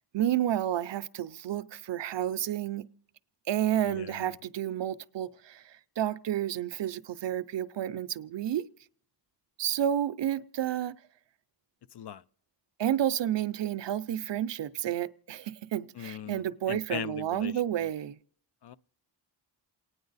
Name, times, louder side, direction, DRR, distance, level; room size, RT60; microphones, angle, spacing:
voice 1, 0.1-2.8 3.5-5.6 6.0-8.6 9.6-10.9 12.8-18.2, right 11 dB, 70° right, 0.6 m, -30 dB
voice 2, 3.8-4.2 11.9-12.2 16.0-17.5 18.6-18.8, left 10 dB, 65° left, 0.5 m, -39 dB
28.5 x 9.5 x 4.0 m
wide cardioid pair, 145°, 44 cm